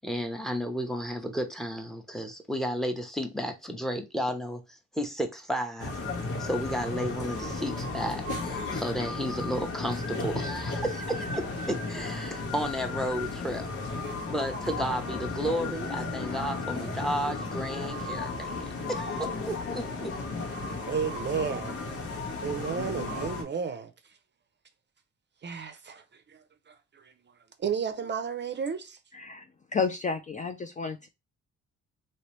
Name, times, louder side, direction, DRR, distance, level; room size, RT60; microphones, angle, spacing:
voice 1, 0.0-6.0 6.4-13.7 14.3-18.5 18.9-20.1, equal, ahead, 0.8 m, -33 dB
sound 1, 5.8-23.4, left 3 dB, 85° left, 1.4 m, -34 dB
voice 2, 20.6-21.8 22.4-23.9 25.4-27.3 27.6-29.0, right 6 dB, 35° right, 0.5 m, -33 dB
voice 3, 29.1-29.5 29.7-31.1, left 5 dB, 25° left, 0.4 m, -31 dB
3.0 x 3.0 x 3.1 m
cardioid pair, 90°, 30 cm